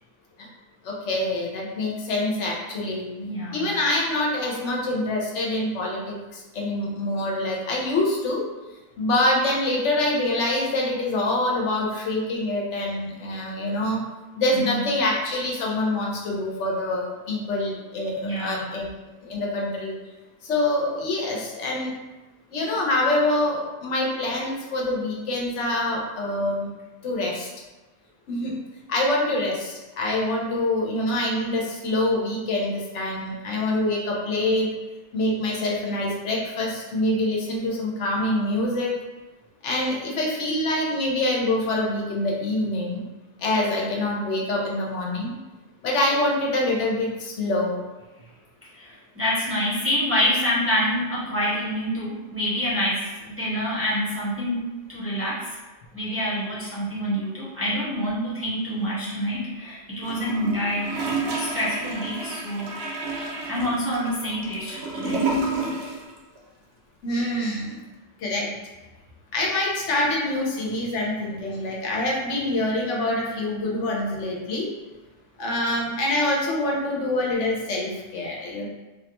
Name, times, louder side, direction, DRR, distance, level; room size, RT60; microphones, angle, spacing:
voice 1, 0.8-3.1 3.5-8.4 9.0-14.0 14.4-18.9 19.2-19.9 20.4-21.9 22.5-26.7 27.0-27.5 28.3-28.5 28.9-34.7 35.1-38.9 39.6-43.0 43.4-45.3 45.8-47.8 67.0-67.8 68.2-68.5 69.3-74.7 75.4-78.7, left 1 dB, 85° left, -2 dB, 1.0 m, -25 dB
voice 2, 3.1-3.7 14.5-14.8 18.2-18.7 48.7-55.6 55.9-60.9 61.4-62.7 63.2-65.2, equal, 15° right, -8 dB, 0.6 m, -27 dB
Gurgling / Toilet flush, 60.0-66.1 66.4-66.5, right 3 dB, 65° right, 0.8 m, -30 dB
3.4 x 2.1 x 2.9 m, 1.1 s
omnidirectional pair, 1.2 m